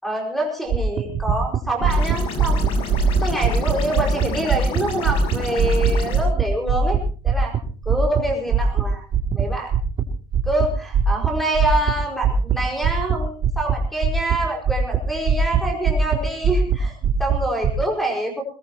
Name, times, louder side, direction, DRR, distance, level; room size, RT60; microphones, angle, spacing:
voice 1, 0.0-2.6 3.2-7.0 7.2-7.5 7.8-9.0 9.3-9.7 10.4-18.4, right 1 dB, ahead, 2 dB, 5.1 m, -26 dB
sound 1, 0.7-4.8 5.0-8.2 8.5-8.8 9.1-9.4 9.7-10.0 10.3-10.7 10.9-11.3 11.5-11.9 12.2-12.6 12.8-13.2 13.4-13.8 14.0-14.3 14.6-15.6 15.8-16.2 16.4-16.7 17.0-17.7, right 8 dB, 35° right, 2.6 m, -20 dB
sound 2, 1.8-6.2, left 4 dB, 50° left, 5.8 m, -30 dB
22.5 x 21.0 x 3.0 m, 0.39 s
cardioid pair, 175°, 12 cm